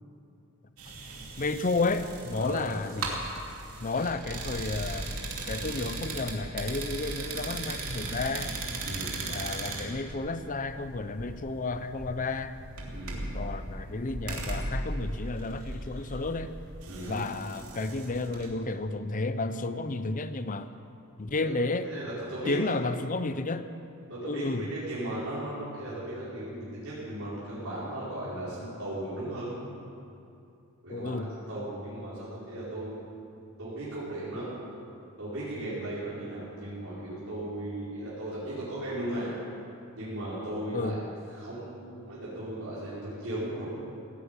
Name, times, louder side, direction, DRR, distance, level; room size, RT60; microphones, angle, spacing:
sound 1, 0.8-18.5, right 2 dB, 80° right, 2.7 m, -37 dB
voice 1, 1.4-3.4 3.8-8.5 9.3-12.5 13.3-16.5 17.1-20.7 21.2-21.9 22.5-23.7 24.3-24.7 30.9-31.4 40.7-41.0, left 3 dB, 35° left, 11 dB, 0.7 m, -32 dB
voice 2, 8.8-9.2 12.9-13.2 16.8-17.2 21.3-21.5 21.8-22.8 24.1-29.6 30.8-32.9 33.6-34.5 35.2-39.3 40.0-41.0 41.3-43.7, right 1 dB, 65° right, -11 dB, 5.0 m, -36 dB
17.0 x 9.3 x 9.0 m, 2.6 s
head